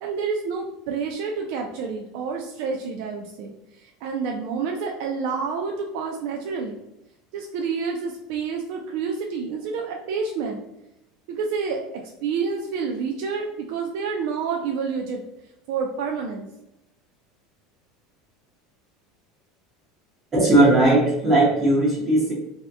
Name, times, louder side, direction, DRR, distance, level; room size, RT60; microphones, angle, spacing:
voice 1, 0.0-6.8 7.3-10.6 11.3-15.2 15.7-16.5, right 5 dB, 65° right, 1 dB, 0.4 m, -29 dB
voice 2, 20.3-22.3, right 2 dB, 25° right, -5 dB, 0.9 m, -18 dB
2.7 x 2.1 x 3.4 m, 0.89 s
supercardioid pair, 155°, 0 cm